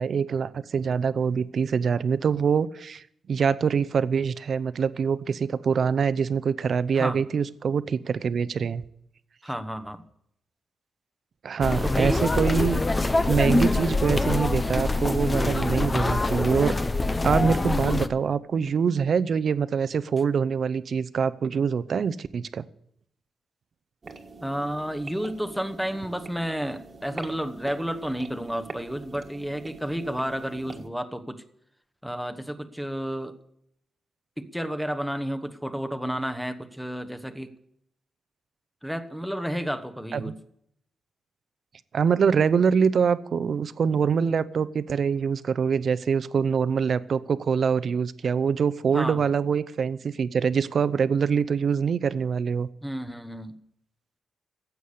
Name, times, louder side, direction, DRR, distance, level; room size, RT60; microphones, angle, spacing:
voice 1, 0.0-8.8 11.4-12.8 13.3-16.7 17.2-22.6 40.1-40.3 41.9-52.7, right 6 dB, 55° right, 16 dB, 0.7 m, -24 dB
voice 2, 9.4-10.0 11.8-12.2 24.4-31.4 32.0-33.3 34.4-37.5 38.8-40.4 48.9-49.2 52.8-53.6, equal, ahead, 9 dB, 1.1 m, -31 dB
sound 1, 11.6-18.1, left 2 dB, 20° left, 0.7 m, -24 dB
sound 2, 24.0-30.9, right 3 dB, 35° right, 1.6 m, -44 dB
15.0 x 8.2 x 8.5 m, 0.73 s
cardioid pair, 125°, 0 cm